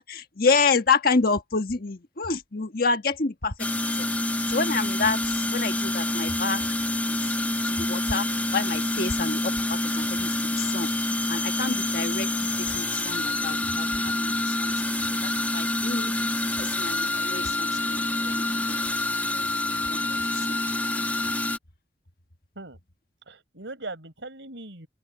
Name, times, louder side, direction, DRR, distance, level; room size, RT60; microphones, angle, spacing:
voice 1, 0.0-3.5 4.0-4.1 4.5-6.6 7.1-7.3 7.6-10.9 11.3-12.3 12.6-14.7 15.2-16.1 16.6-18.8 19.3-19.4 19.9-20.1 20.3-20.6, left 4 dB, 55° left, 1.5 m, -28 dB
sound 1, 3.6-21.6, left 1 dB, 10° left, 1.4 m, -27 dB
voice 2, 23.3-24.9, right 2 dB, 85° right, 5.1 m, -39 dB
open air
head